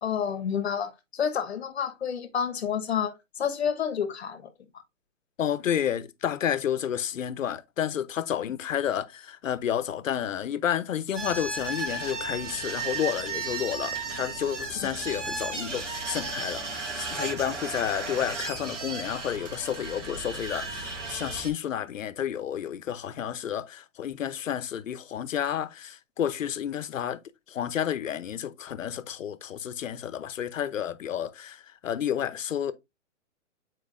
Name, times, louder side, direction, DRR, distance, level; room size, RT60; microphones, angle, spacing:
voice 1, 0.0-4.5, left 8 dB, 55° left, 1.3 m, -29 dB
voice 2, 5.4-27.2 27.5-32.7, left 9 dB, 85° left, 0.8 m, -31 dB
sound 1, 11.1-21.5, right 4 dB, 70° right, 2.2 m, -34 dB
8.2 x 4.6 x 2.5 m
hypercardioid pair, 175°, 38 cm